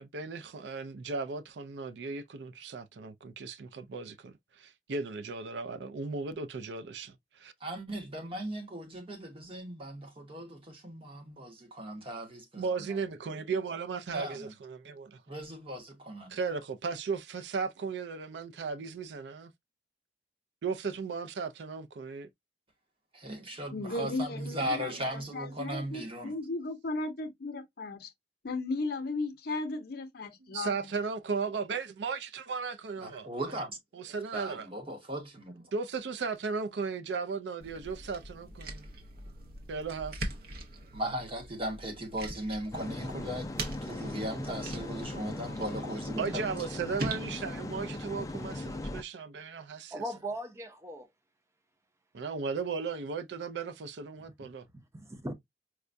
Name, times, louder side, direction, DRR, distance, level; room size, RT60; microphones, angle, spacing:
voice 1, 0.0-7.5 12.6-15.2 16.3-19.5 20.6-22.3 24.7-25.0 30.5-33.3 33.9-34.7 35.7-38.8 39.7-40.3 46.2-50.0 52.1-54.7, right 5 dB, 75° right, 0.4 m, -36 dB
voice 2, 7.6-13.0 14.1-14.5 15.3-16.4 23.1-26.3 33.0-35.7 40.9-43.5 43.8-46.5, right 1 dB, 30° right, 1.0 m, -38 dB
voice 3, 23.7-28.1 28.4-30.8, left 2 dB, 60° left, 0.6 m, -36 dB
sound 1, 37.6-48.8, right 2 dB, 60° right, 0.8 m, -43 dB
sound 2, 42.7-49.0, left 2 dB, 20° left, 0.3 m, -39 dB
voice 4, 49.9-51.1 54.4-54.5 54.7-55.3, right 1 dB, 15° right, 0.6 m, -39 dB
4.7 x 2.2 x 2.6 m
head